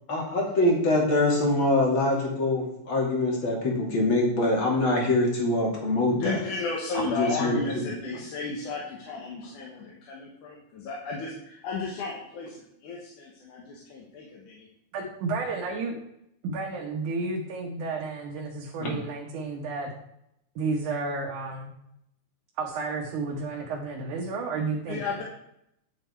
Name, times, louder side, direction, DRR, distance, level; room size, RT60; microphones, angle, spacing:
voice 1, 0.1-6.4 7.0-7.6 18.8-18.9, left 2 dB, 45° left, -1 dB, 3.2 m, -24 dB
voice 2, 6.1-14.7 24.9-25.2, left 3 dB, 85° left, -2 dB, 3.0 m, -34 dB
voice 3, 14.9-16.0 16.4-19.9 20.6-21.7 22.6-25.0, right 3 dB, 85° right, -2 dB, 2.9 m, -31 dB
10.5 x 7.8 x 4.5 m, 0.78 s
omnidirectional pair, 3.4 m